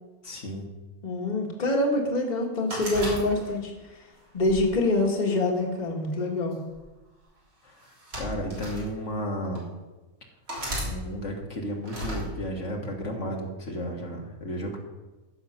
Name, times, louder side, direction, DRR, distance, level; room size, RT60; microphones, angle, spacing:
voice 1, 0.2-0.7 7.6-9.6 10.8-14.8, equal, 60° left, 0 dB, 1.9 m, -33 dB
voice 2, 1.0-3.7 4.3-6.6, left 2 dB, 30° left, 1 dB, 1.6 m, -25 dB
sound 1, 2.7-3.8 4.4-5.6 6.5-6.8 7.8-8.9 9.6-9.7 10.5-10.9 11.9-12.2, equal, 85° right, 3.7 m, -34 dB
14.5 x 6.6 x 5.7 m, 1.1 s
omnidirectional pair, 1.4 m